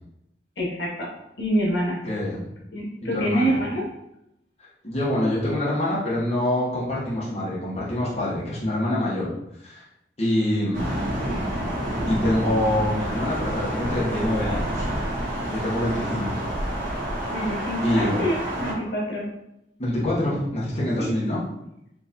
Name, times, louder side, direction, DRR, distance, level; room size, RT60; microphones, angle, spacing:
voice 1, 0.6-1.1 1.4-2.0 2.7-3.8 17.3-19.3 21.0-21.1, equal, 80° left, -3 dB, 1.3 m, -26 dB
voice 2, 2.0-2.6 3.1-3.6 4.6-9.3 9.6-9.8 10.2-11.0 12.1-14.9 15.5-16.4 16.7-16.9 17.8-18.2 19.8-21.4, left 1 dB, 35° left, -7 dB, 1.0 m, -25 dB
Thunder, 10.7-18.7, right 1 dB, 50° right, 1.3 m, -28 dB
4.6 x 3.2 x 2.8 m, 0.82 s
head